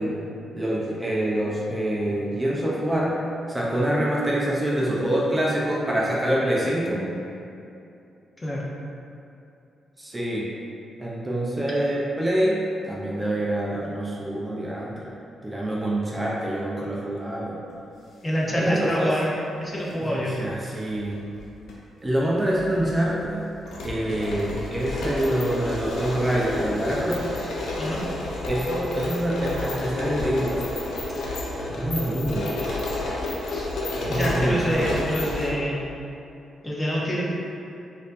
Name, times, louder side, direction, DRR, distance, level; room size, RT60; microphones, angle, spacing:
voice 1, 0.0-3.2 3.5-7.2 10.0-10.5 11.0-15.1 15.4-17.6 18.5-19.2 20.0-21.3 22.0-23.5 23.8-27.3 28.5-30.7 31.7-32.6 34.0-34.9, right 1 dB, 15° right, -5 dB, 0.5 m, -26 dB
voice 2, 18.2-19.3 19.6-20.3 27.8-28.0 33.5-33.7 34.1-35.8 36.6-37.2, equal, 25° left, -5 dB, 0.7 m, -26 dB
sound 1, 19.7-19.9 21.0-21.7 22.0-22.1 22.5-35.5, left 2 dB, 80° left, 0.6 m, -30 dB
4.2 x 2.6 x 2.5 m, 2.7 s
cardioid pair, 90°, 0 cm